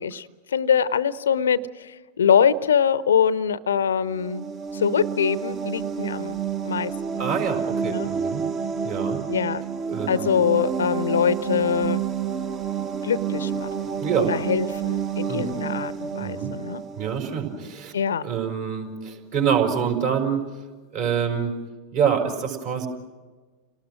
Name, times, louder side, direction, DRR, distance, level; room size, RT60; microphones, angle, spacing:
voice 1, 0.0-4.5 4.7-6.4 6.6-7.2 7.9-8.1 9.3-9.6 10.1-12.0 13.0-16.8 17.9-18.3, left 7 dB, 65° left, 18 dB, 0.7 m, -24 dB
sound 1, 4.1-17.7, right 7 dB, 30° right, 1.2 m, -29 dB
voice 2, 7.2-8.5 8.8-9.2 9.9-10.3 14.0-14.3 15.3-15.5 16.2-16.5 17.0-17.9 18.2-20.4 20.9-21.5 21.9-22.9, right 7 dB, 50° right, 3 dB, 5.0 m, -26 dB
30.0 x 19.0 x 6.2 m, 1.4 s
figure-of-eight pair, 90°, 0 cm